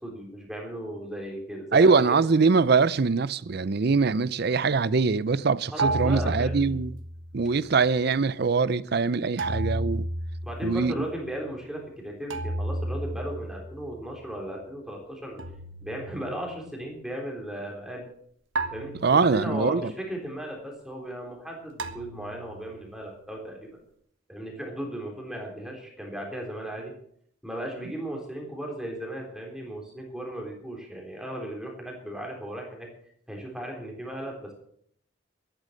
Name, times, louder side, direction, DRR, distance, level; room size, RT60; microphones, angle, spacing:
voice 1, 0.0-1.9 5.7-6.8 10.4-15.4 15.8-18.1 18.7-23.6 24.3-26.9 27.4-32.9 33.3-34.5, right 1 dB, 5° right, 3.6 m, -36 dB
voice 2, 1.7-7.0 7.3-10.1 10.6-10.9 19.0-19.9, right 4 dB, 50° right, 0.5 m, -23 dB
sound 1, 5.8-7.6 9.4-11.2 12.3-14.1 15.4-16.8 18.6-19.8 21.8-23.0, right 2 dB, 75° right, 1.4 m, -33 dB
13.5 x 11.5 x 6.5 m
head